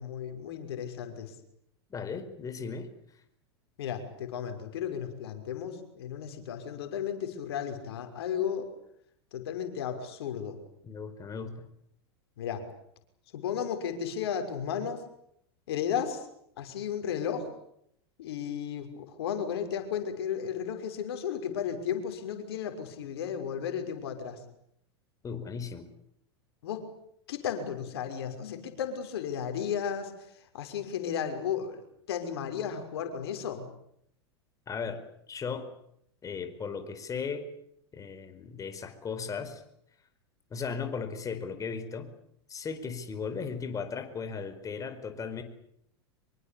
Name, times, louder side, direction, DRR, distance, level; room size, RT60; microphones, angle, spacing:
voice 1, 0.0-1.4 3.8-8.7 9.3-10.6 12.4-12.7 13.3-15.0 15.7-16.3 16.6-17.5 18.2-24.4 26.6-26.9 27.3-33.7, left 8 dB, 70° left, 6 dB, 6.0 m, -34 dB
voice 2, 1.9-2.9 10.8-11.7 25.2-25.9 34.7-35.0 35.3-35.7 36.2-37.5 37.9-39.6 40.5-42.1 42.5-45.4, left 5 dB, 25° left, 9 dB, 4.7 m, -36 dB
26.0 x 23.5 x 8.7 m, 0.73 s
hypercardioid pair, 95°, 14 cm